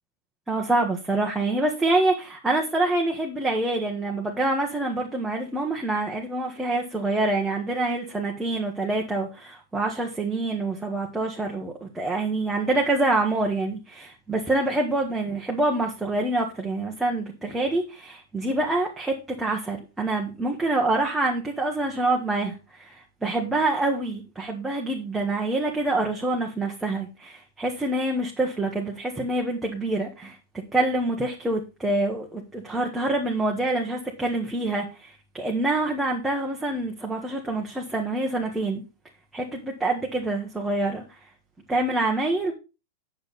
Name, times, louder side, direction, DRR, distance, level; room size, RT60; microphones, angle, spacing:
voice 1, 0.5-22.5 22.8-30.4 30.7-38.8 39.3-41.0 41.7-42.5, right 2 dB, 5° right, -1 dB, 1.1 m, -26 dB
8.8 x 6.8 x 4.0 m, 0.29 s
supercardioid pair, 170°, 0 cm